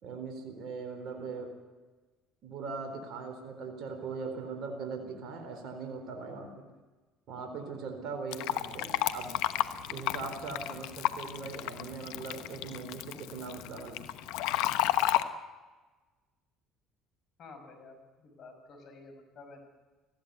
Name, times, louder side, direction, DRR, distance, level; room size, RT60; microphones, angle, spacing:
voice 1, 0.0-1.5 2.4-6.7 7.3-9.4 9.9-14.0, right 4 dB, 60° right, 4 dB, 4.1 m, -40 dB
Fill (with liquid), 8.3-15.2, left 14 dB, 75° left, 1.1 m, -32 dB
voice 2, 17.4-19.6, left 3 dB, 55° left, 6 dB, 6.0 m, -51 dB
20.0 x 16.0 x 8.2 m, 1.3 s
hypercardioid pair, 70°, 0 cm